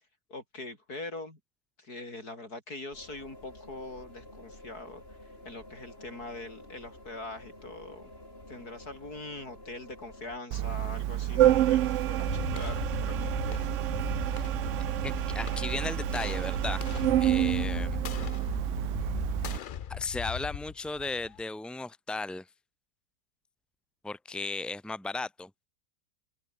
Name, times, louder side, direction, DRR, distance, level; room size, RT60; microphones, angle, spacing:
voice 1, 0.3-1.4 1.8-8.1 8.5-13.7, left 2 dB, 65° left, 6.2 m, -43 dB
sound 1, 2.9-10.4, left 1 dB, 35° left, 8.0 m, -50 dB
Organ, 10.5-19.6, right 13 dB, 65° right, 0.8 m, -28 dB
sound 2, 12.3-21.4, left 9 dB, 85° left, 0.4 m, -38 dB
voice 2, 15.0-16.8 17.2-18.0 19.9-22.5 24.0-25.5, left 3 dB, ahead, 2.4 m, -35 dB
open air
omnidirectional pair, 1.7 m